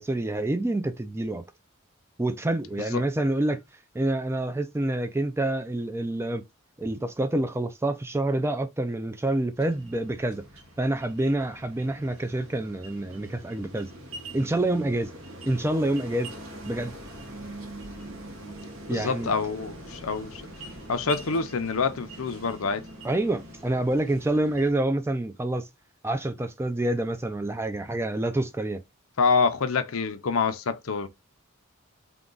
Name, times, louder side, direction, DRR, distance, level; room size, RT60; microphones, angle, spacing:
voice 1, 0.0-1.4 2.2-3.6 3.9-6.4 6.8-10.4 10.8-13.9 14.3-15.1 15.5-16.3 16.7-16.9 18.9-19.3 23.0-25.7 26.0-28.8, right 1 dB, 10° right, 0.3 m, -27 dB
sound 1, 9.6-24.7, right 1 dB, 70° right, 1.3 m, -43 dB
voice 2, 18.9-20.5 20.9-22.8 29.2-31.1, left 4 dB, 75° left, 0.6 m, -26 dB
3.6 x 2.3 x 3.7 m
head